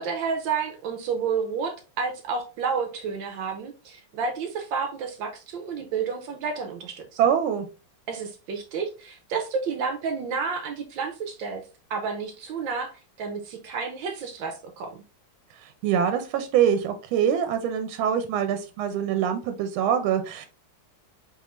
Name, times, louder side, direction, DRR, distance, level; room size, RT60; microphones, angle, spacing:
voice 1, 0.0-7.2 8.1-11.6 11.9-12.9 13.2-15.0, right 5 dB, 75° right, 1.4 m, -30 dB
voice 2, 7.2-7.7 15.6-20.5, right 9 dB, 90° right, 1.4 m, -24 dB
4.2 x 3.6 x 3.0 m
omnidirectional pair, 2.2 m